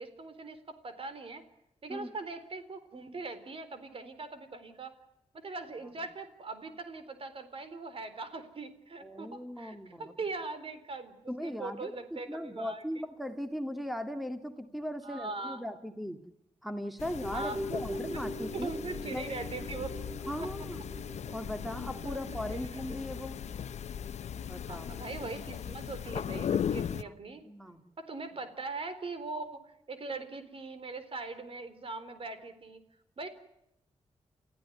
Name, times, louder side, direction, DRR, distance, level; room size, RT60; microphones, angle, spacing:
voice 1, 0.0-1.4 1.8-4.9 5.3-13.0 15.0-15.6 17.3-17.6 18.1-18.2 18.5-20.0 20.4-20.5 22.0-22.8 24.7-27.5 28.0-32.8 33.2-33.3, right 3 dB, 55° right, 11 dB, 4.1 m, -41 dB
voice 2, 9.0-10.1 11.3-16.2 16.6-18.7 19.1-19.3 20.3-20.8 21.3-23.4 24.4-25.0 27.0-27.8, equal, ahead, 8 dB, 2.1 m, -38 dB
sound 1, 17.0-27.0, left 8 dB, 80° left, 0.9 m, -38 dB
sound 2, 17.2-25.6 26.0-26.1, right 1 dB, 25° right, 5.7 m, -43 dB
29.0 x 15.5 x 9.5 m, 0.82 s
cardioid pair, 80°, 12 cm